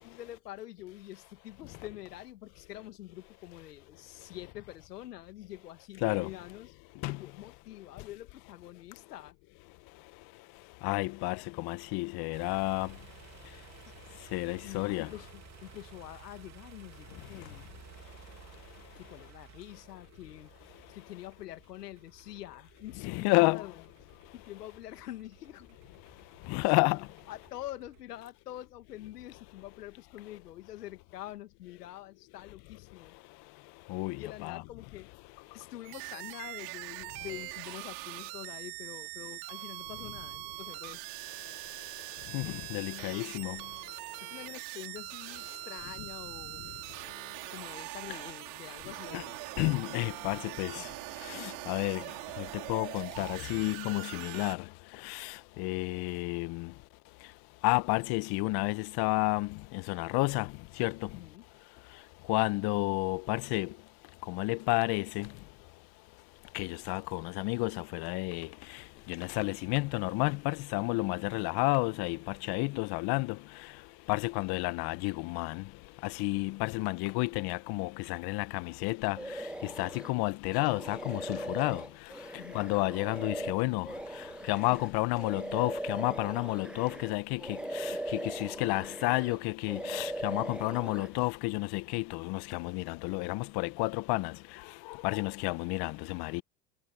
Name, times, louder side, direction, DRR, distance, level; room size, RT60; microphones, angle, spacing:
voice 1, 0.0-9.4 14.6-17.7 18.8-20.5 20.9-23.8 24.3-25.8 26.6-33.2 34.2-35.1 35.5-41.0 44.1-46.6 47.2-49.4 61.1-61.5 82.4-82.7, left 14 dB, 80° left, 2.2 m, -46 dB
voice 2, 10.8-12.9 14.3-15.1 23.0-23.6 26.5-27.0 33.9-34.2 34.4-34.6 42.3-43.6 49.1-49.2 49.6-50.7 51.3-52.0 52.4-54.6 55.0-55.3 55.6-56.7 57.6-59.5 59.7-60.5 60.8-60.9 62.3-63.7 64.3-65.3 66.5-68.5 69.1-72.2 72.5-73.3 74.1-75.6 76.2-79.2 79.8-81.8 82.5-83.9 84.5-87.9 88.2-94.3 95.0-96.4, left 24 dB, 55° left, 1.4 m, -31 dB
sound 1, 12.3-28.0, right 9 dB, 35° right, 3.2 m, -55 dB
sound 2, 35.8-54.6, right 32 dB, 65° right, 6.2 m, -42 dB
sound 3, 79.2-80.1 80.5-87.1 87.4-89.4 89.7-91.1, right 1 dB, ahead, 0.4 m, -39 dB
hypercardioid pair, 85°, 46 cm